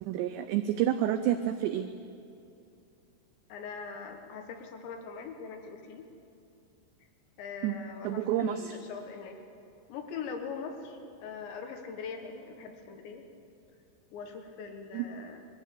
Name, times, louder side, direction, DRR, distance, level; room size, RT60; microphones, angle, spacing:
voice 1, 0.0-1.9 7.6-7.8 8.0-8.8 14.9-15.1, right 11 dB, 90° right, 9 dB, 2.5 m, -29 dB
voice 2, 3.5-6.1 7.4-9.4 9.9-13.2 14.1-15.4, left 5 dB, 70° left, 4 dB, 3.4 m, -42 dB
22.0 x 15.0 x 8.3 m, 2.6 s
omnidirectional pair, 5.8 m